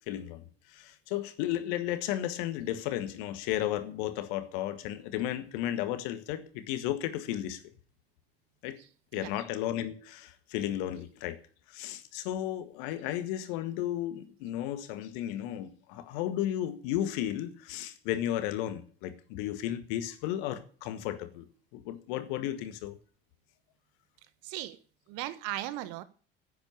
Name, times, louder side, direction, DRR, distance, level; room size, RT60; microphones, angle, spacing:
voice 1, 0.1-7.6 8.6-8.8 9.1-11.4 11.7-21.5 21.7-23.0, left 12 dB, 55° left, 1.8 m, -34 dB
voice 2, 24.4-24.8 25.1-26.0, right 14 dB, 50° right, 1.4 m, -37 dB
10.5 x 9.0 x 8.7 m
figure-of-eight pair, 70°, 30 cm